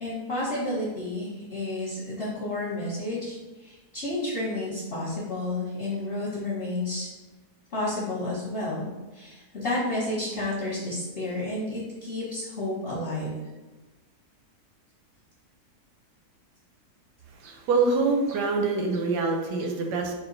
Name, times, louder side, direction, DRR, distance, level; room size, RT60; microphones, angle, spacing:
voice 1, 0.0-3.3 3.6-7.1 7.7-13.4, left 2 dB, 40° left, -9 dB, 1.1 m, -31 dB
voice 2, 17.4-20.1, right 3 dB, 85° right, 2 dB, 1.2 m, -25 dB
4.1 x 2.2 x 3.8 m, 1.1 s
omnidirectional pair, 1.7 m